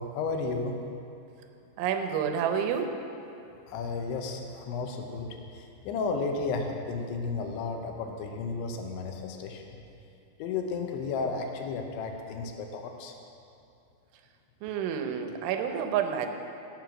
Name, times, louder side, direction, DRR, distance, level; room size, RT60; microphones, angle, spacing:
voice 1, 0.1-0.8 3.7-9.8 10.4-13.1, left 4 dB, 80° left, 3 dB, 3.2 m, -33 dB
voice 2, 1.8-3.0 14.6-16.3, right 8 dB, 85° right, 6 dB, 3.2 m, -29 dB
15.5 x 7.6 x 6.1 m, 2.6 s
omnidirectional pair, 5.4 m